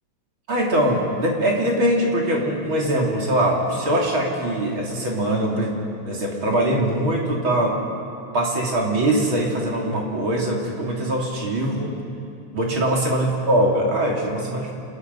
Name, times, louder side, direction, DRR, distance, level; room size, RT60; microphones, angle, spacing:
voice 1, 0.5-5.8 6.0-7.8 8.3-12.0 12.5-14.7, right 1 dB, 40° right, -1 dB, 3.6 m, -22 dB
28.0 x 14.0 x 9.5 m, 2.5 s
omnidirectional pair, 3.5 m